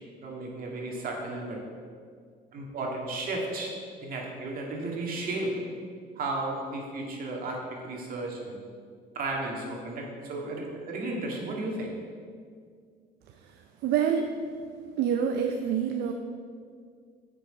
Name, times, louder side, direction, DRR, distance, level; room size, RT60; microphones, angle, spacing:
voice 1, 0.2-1.6 2.5-3.7 4.0-5.5 6.2-8.6 9.1-11.9, right 2 dB, 60° right, -1 dB, 2.0 m, -34 dB
voice 2, 13.8-14.3 15.0-16.1, right 8 dB, 75° right, 5 dB, 0.6 m, -26 dB
9.1 x 6.1 x 5.0 m, 2.1 s
cardioid pair, 110°, 17 cm